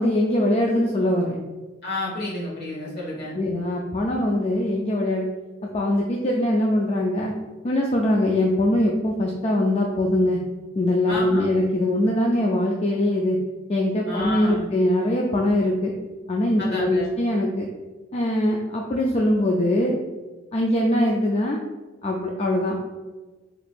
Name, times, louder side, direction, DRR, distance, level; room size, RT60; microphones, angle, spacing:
voice 1, 0.0-1.4 3.3-5.3 5.7-7.3 7.6-10.4 10.8-13.4 13.7-15.9 16.3-17.7 18.1-20.0 20.5-21.6 22.0-22.8, left 1 dB, 30° left, -1 dB, 0.4 m, -22 dB
voice 2, 1.8-3.3 11.1-11.5 14.0-14.7 16.6-17.1, left 1 dB, 55° left, -5 dB, 1.5 m, -30 dB
5.1 x 3.0 x 2.4 m, 1.3 s
head